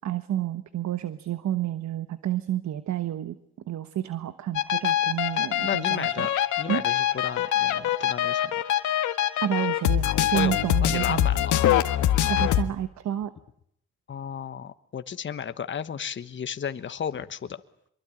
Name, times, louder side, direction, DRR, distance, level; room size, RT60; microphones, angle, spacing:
voice 1, 0.0-3.4 3.7-6.3 6.7-6.8 9.4-11.3 12.3-13.3, right 11 dB, 65° right, 12 dB, 1.2 m, -30 dB
sound 1, 4.6-12.6, left 11 dB, 75° left, 1.6 m, -24 dB
voice 2, 5.6-8.6 10.3-11.7 14.1-17.6, left 7 dB, 40° left, 11 dB, 1.3 m, -34 dB
25.0 x 23.0 x 8.9 m, 0.71 s
cardioid pair, 90°, 30 cm